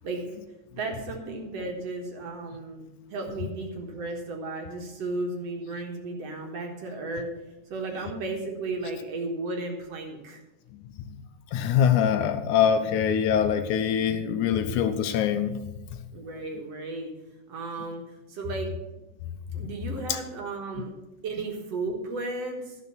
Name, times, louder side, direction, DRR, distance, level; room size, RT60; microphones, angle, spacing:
voice 1, 0.7-2.8 3.1-7.3 7.7-10.4 16.1-17.1 17.5-18.0 18.3-18.8 19.5-20.9 21.2-22.8, right 3 dB, 55° right, 2 dB, 2.3 m, -34 dB
voice 2, 11.5-15.6, left 8 dB, 80° left, 9 dB, 2.0 m, -24 dB
12.0 x 6.8 x 6.9 m, 1.0 s
omnidirectional pair, 3.7 m